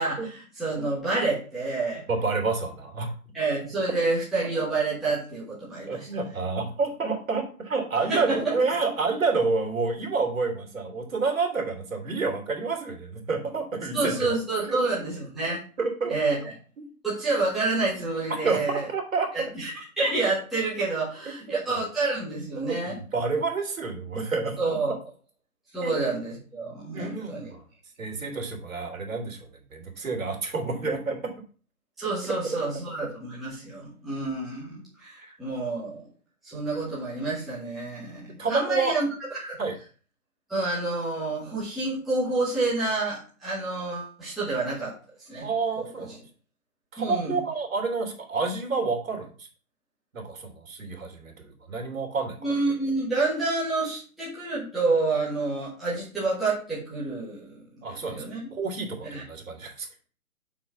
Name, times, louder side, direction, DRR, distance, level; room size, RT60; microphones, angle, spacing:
voice 1, 0.0-2.0 3.3-6.1 8.1-8.5 13.9-15.6 16.1-16.5 17.0-18.9 19.3-19.7 20.0-23.0 24.6-24.9 25.7-27.5 32.0-36.1 36.4-39.6 40.5-45.5 45.8-46.1 47.0-47.4 52.4-58.4 59.0-59.2, right 3 dB, ahead, -12 dB, 1.3 m, -28 dB
voice 2, 2.1-3.1 5.9-14.1 14.6-14.8 15.8-16.1 18.4-19.5 21.5-21.8 22.6-24.6 25.8-25.9 26.9-27.6 28.0-31.2 35.2-35.4 38.4-39.0 39.6-39.8 45.4-46.1 46.9-49.5 50.1-52.4 57.8-58.2 58.5-59.9, right 4 dB, 65° right, 3 dB, 2.9 m, -29 dB
5.8 x 4.9 x 6.0 m, 0.40 s
hypercardioid pair, 170°, 43 cm